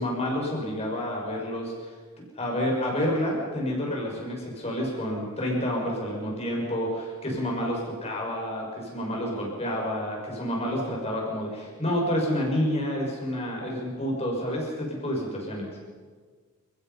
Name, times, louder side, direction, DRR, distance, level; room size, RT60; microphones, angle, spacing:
voice 1, 0.0-1.9 2.4-15.7, equal, 30° left, -1 dB, 6.0 m, -29 dB
29.5 x 16.0 x 5.7 m, 1.5 s
head